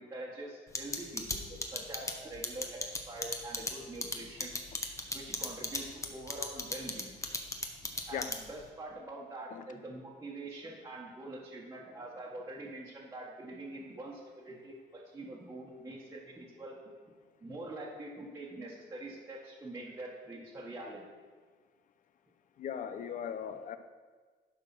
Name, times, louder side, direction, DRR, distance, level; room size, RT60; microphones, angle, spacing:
voice 1, 0.0-4.5 5.1-7.1 8.1-16.8 17.4-21.0, right 2 dB, 15° right, -5 dB, 1.5 m, -45 dB
sound 1, 0.7-8.6, left 2 dB, 15° left, 1.1 m, -35 dB
voice 2, 22.6-23.8, left 8 dB, 50° left, 11 dB, 0.7 m, -38 dB
11.0 x 4.8 x 6.0 m, 1.5 s
cardioid pair, 110°, 17 cm